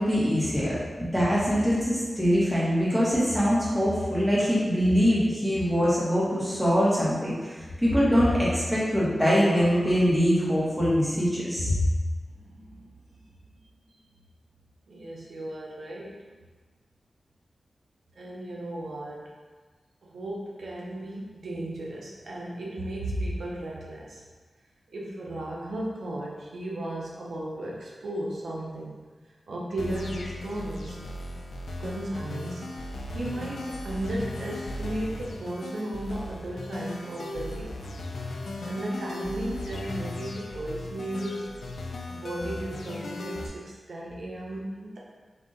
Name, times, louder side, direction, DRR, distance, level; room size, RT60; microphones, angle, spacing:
voice 1, 0.0-11.8, equal, 5° right, -8 dB, 1.3 m, -23 dB
voice 2, 12.3-13.2 14.9-16.3 18.2-19.3 20.0-24.2 24.9-29.0 29.5-31.1 31.8-32.7 33.1-37.8 38.6-41.6 41.8-45.0, right 1 dB, 80° right, -3 dB, 0.7 m, -35 dB
sound 1, 29.8-43.5, left 1 dB, 90° left, 0.4 m, -37 dB
3.9 x 2.8 x 3.7 m, 1.4 s
wide cardioid pair, 120°, 0 cm